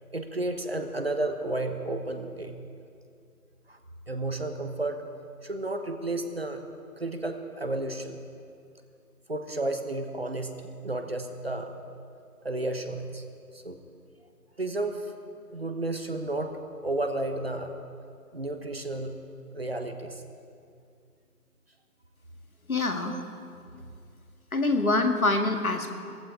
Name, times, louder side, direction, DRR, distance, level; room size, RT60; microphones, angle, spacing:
voice 1, 0.1-2.5 3.7-3.8 4.1-5.0 5.4-6.6 7.0-8.2 9.3-10.6 10.8-11.7 12.4-13.2 13.5-13.8 14.6-15.2 15.5-16.5 16.8-17.7 18.3-19.2 19.5-20.2 23.1-23.2, right 2 dB, 40° right, 6 dB, 1.1 m, -32 dB
voice 2, 22.7-23.2 24.5-25.9, left 2 dB, 60° left, 5 dB, 1.8 m, -25 dB
18.5 x 15.0 x 4.8 m, 2.4 s
figure-of-eight pair, 170°, 47 cm